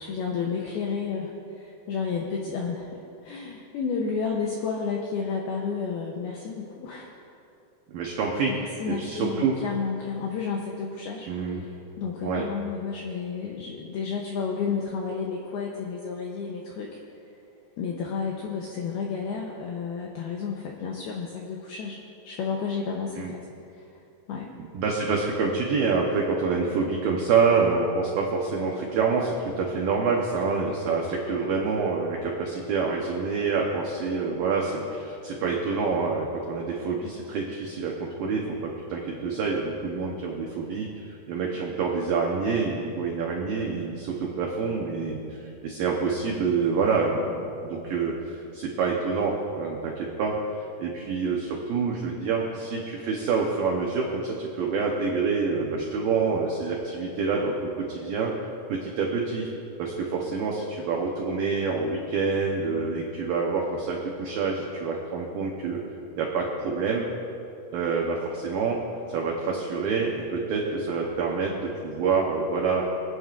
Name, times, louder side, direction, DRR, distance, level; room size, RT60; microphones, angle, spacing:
voice 1, 0.0-7.1 8.5-11.3 11.6-11.7 12.0-17.0 17.8-23.4 23.7-23.9 24.3-24.6, left 5 dB, 85° left, -1 dB, 2.2 m, -31 dB
voice 2, 7.9-9.5 11.3-11.6 12.2-12.5 23.2-23.3 24.6-38.4 38.9-58.3 58.7-59.5 59.8-65.8 66.2-67.1 67.7-68.8 69.1-72.8, right 4 dB, 85° right, -1 dB, 2.0 m, -27 dB
26.0 x 9.1 x 2.5 m, 2.7 s
omnidirectional pair, 5.5 m